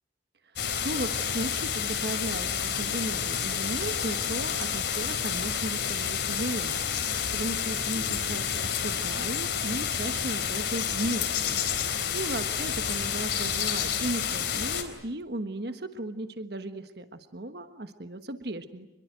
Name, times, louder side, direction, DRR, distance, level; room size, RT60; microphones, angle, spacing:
sound 1, 0.6-14.8, left 7 dB, 65° left, 3.9 m, -29 dB
voice 1, 0.8-18.9, right 1 dB, 55° right, 9 dB, 1.4 m, -36 dB
27.5 x 22.5 x 9.2 m, 0.90 s
head